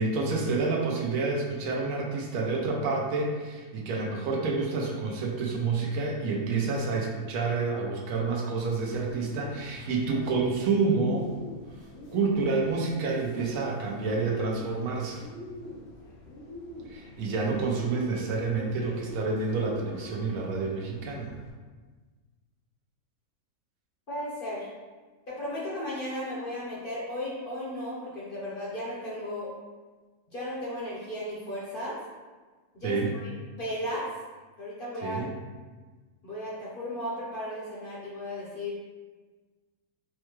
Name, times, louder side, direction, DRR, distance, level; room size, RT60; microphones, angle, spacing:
voice 1, 0.0-11.3 12.1-15.2 16.9-21.3 32.8-33.2 35.0-35.3, right 4 dB, 75° right, -1 dB, 1.0 m, -28 dB
Bird, 8.8-21.5, left 1 dB, 70° left, 1.0 m, -45 dB
voice 2, 24.1-24.7 25.3-29.5 30.3-31.9 32.7-33.3 33.6-34.0 34.6-35.2 36.2-38.8, left 1 dB, 50° left, -7 dB, 0.7 m, -35 dB
4.6 x 2.2 x 2.9 m, 1.4 s
omnidirectional pair, 1.5 m